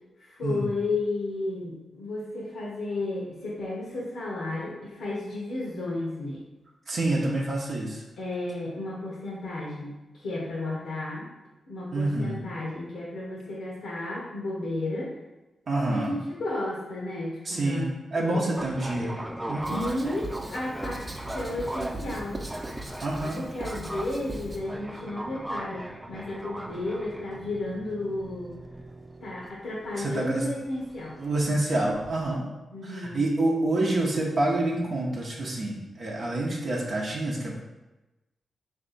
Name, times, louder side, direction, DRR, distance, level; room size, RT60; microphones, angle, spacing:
voice 1, 0.2-6.4 8.2-11.3 11.7-15.1 15.7-17.9 18.2-18.6 19.7-22.4 23.4-28.6 29.2-31.2 32.7-33.2, left 2 dB, 85° left, -4 dB, 0.7 m, -33 dB
voice 2, 6.9-8.0 11.9-12.4 15.7-16.1 17.5-19.2 19.5-19.9 23.0-23.4 30.0-30.4 31.2-32.4 32.8-37.6, right 2 dB, 65° right, -3 dB, 0.7 m, -27 dB
sound 1, 18.6-32.3, right 1 dB, 10° right, 0.3 m, -39 dB
Writing, 19.6-24.6, right 2 dB, 30° right, 0.7 m, -40 dB
3.4 x 2.7 x 3.9 m, 1.0 s
supercardioid pair, 50°, 0 cm